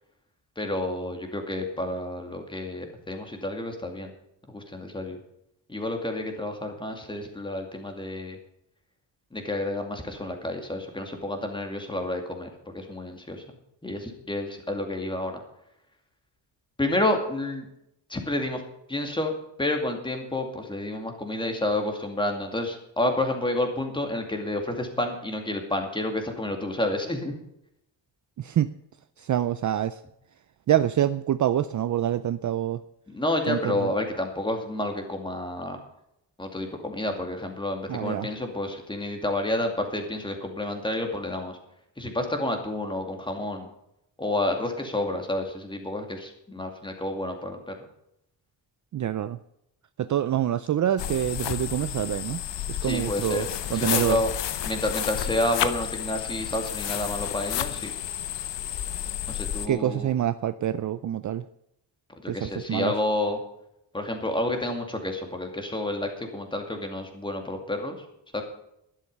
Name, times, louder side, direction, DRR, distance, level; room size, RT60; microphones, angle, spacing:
voice 1, 0.6-4.1 4.5-5.2 5.7-8.4 9.3-13.4 13.8-15.4 16.8-17.7 18.1-18.6 18.9-27.3 33.1-35.8 36.4-41.6 42.0-43.7 44.2-47.7 52.8-54.3 54.6-57.9 59.3-60.1 62.2-63.4 63.9-68.0 68.3-68.4, left 1 dB, 10° left, 4 dB, 2.3 m, -30 dB
voice 2, 28.4-28.7 29.2-30.0 30.7-32.8 33.5-33.9 37.9-38.3 48.9-49.4 50.0-52.4 52.7-54.2 59.7-61.5 62.3-62.9, right 11 dB, 45° right, 13 dB, 0.5 m, -26 dB
sound 1, 51.0-59.7, left 11 dB, 90° left, 0.9 m, -31 dB
12.0 x 12.0 x 5.4 m, 0.79 s
wide cardioid pair, 155°, 42 cm